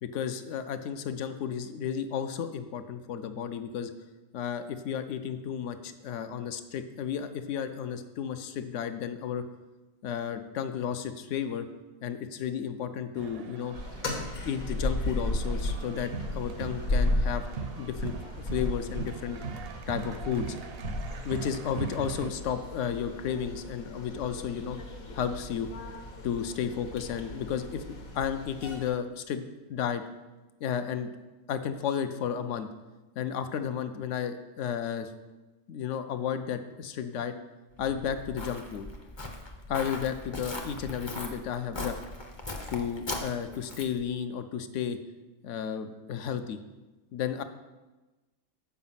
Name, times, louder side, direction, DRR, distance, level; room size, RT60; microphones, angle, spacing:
voice 1, 0.0-3.9 4.3-9.4 10.0-11.7 12.0-13.8 14.4-17.4 17.8-19.4 19.9-20.6 21.2-24.8 25.2-25.7 26.2-30.0 30.6-31.1 31.5-32.7 33.2-35.1 35.7-37.3 37.8-38.9 39.7-42.0 42.7-45.0 45.4-46.6 47.1-47.4, left 8 dB, 70° left, 9 dB, 0.8 m, -33 dB
sound 1, 13.2-22.3, right 5 dB, 65° right, 0.6 m, -40 dB
sound 2, 13.7-28.9, left 1 dB, 85° left, 1.6 m, -35 dB
Walk footsteps, 37.8-44.1, left 2 dB, 30° left, 0.6 m, -39 dB
7.1 x 5.0 x 5.6 m, 1.1 s
omnidirectional pair, 1.4 m